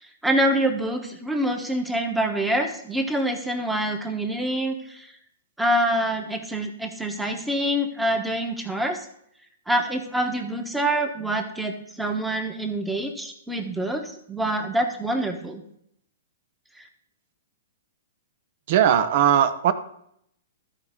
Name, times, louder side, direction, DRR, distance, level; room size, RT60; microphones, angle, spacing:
voice 1, 0.2-5.1 5.6-9.0 9.7-15.6 16.8-16.9, right 1 dB, 5° right, 3 dB, 1.1 m, -26 dB
voice 2, 18.7-19.7, right 10 dB, 55° right, 12 dB, 0.8 m, -19 dB
13.5 x 4.8 x 3.7 m, 0.72 s
hypercardioid pair, 130°, 0 cm